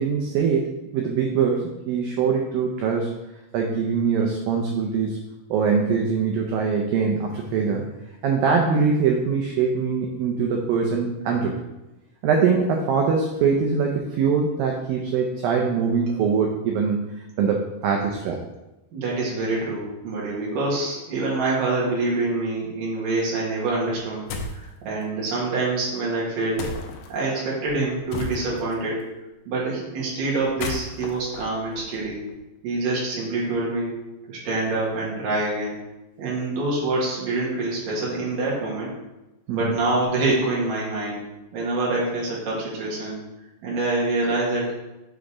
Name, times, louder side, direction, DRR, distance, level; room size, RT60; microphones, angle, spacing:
voice 1, 0.0-3.1 3.5-5.2 5.5-7.9 8.2-11.6 12.2-18.4 39.5-39.7, right 5 dB, 85° right, 1 dB, 2.0 m, -23 dB
voice 2, 18.9-24.3 24.5-26.7 27.1-29.0 29.5-32.2 32.6-33.9 34.3-35.8 36.2-38.9 39.5-41.2 41.5-43.2 43.6-44.8, right 2 dB, 60° right, -5 dB, 2.9 m, -26 dB
sound 1, 24.3-24.7 26.6-27.1 28.1-28.7 30.4-32.4, left 3 dB, 80° left, 2.4 m, -34 dB
7.3 x 3.9 x 4.8 m, 0.99 s
omnidirectional pair, 4.9 m